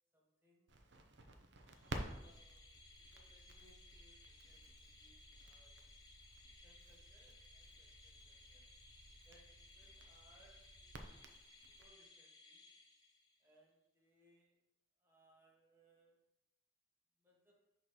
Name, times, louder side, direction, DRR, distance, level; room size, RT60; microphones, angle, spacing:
voice 1, 0.1-0.8 1.9-2.7 3.0-5.8 6.3-8.6 9.2-11.4 11.8-12.6 13.4-14.6 15.0-16.2 17.2-17.6, right 1 dB, 10° right, -3 dB, 1.4 m, -72 dB
Crackle, 0.7-11.9, right 2 dB, 65° right, 0.6 m, -53 dB
sound 1, 1.7-13.5, left 3 dB, 20° left, 1.1 m, -62 dB
6.2 x 3.1 x 5.6 m, 0.90 s
head